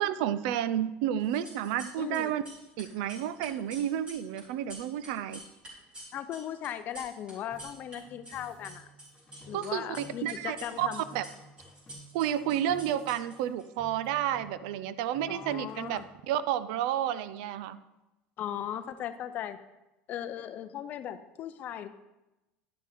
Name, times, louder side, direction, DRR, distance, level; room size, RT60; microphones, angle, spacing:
voice 1, 0.0-2.4 2.8-5.4 9.5-11.2 12.1-16.0 16.3-17.8, right 11 dB, 75° right, 15 dB, 0.4 m, -31 dB
sound 1, 1.2-2.2 2.4-8.0 8.2-9.7 9.9-13.6, right 1 dB, 25° right, 3.3 m, -48 dB
voice 2, 2.0-2.3 6.1-8.9 9.5-11.0 15.3-16.1 18.4-19.6 20.1-21.9, left 10 dB, 40° left, 11 dB, 0.5 m, -38 dB
sound 2, 7.5-10.5 10.8-13.5 13.8-14.8 15.1-16.2, right 1 dB, 20° left, 3.3 m, -53 dB
10.5 x 6.2 x 4.2 m, 0.99 s
cardioid pair, 160°, 5 cm